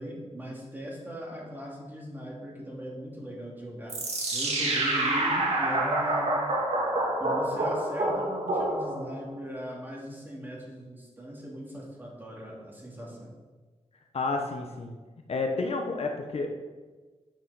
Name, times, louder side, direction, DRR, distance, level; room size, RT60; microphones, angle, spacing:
voice 1, 0.0-4.0 4.3-6.3 7.2-13.3, equal, 15° right, -3 dB, 2.4 m, -39 dB
sound 1, 3.9-9.2, right 2 dB, 60° right, 1.8 m, -27 dB
voice 2, 14.1-15.0 15.3-16.5, left 3 dB, 55° left, 3 dB, 1.0 m, -30 dB
8.7 x 5.5 x 5.7 m, 1.3 s
wide cardioid pair, 135°, 12 cm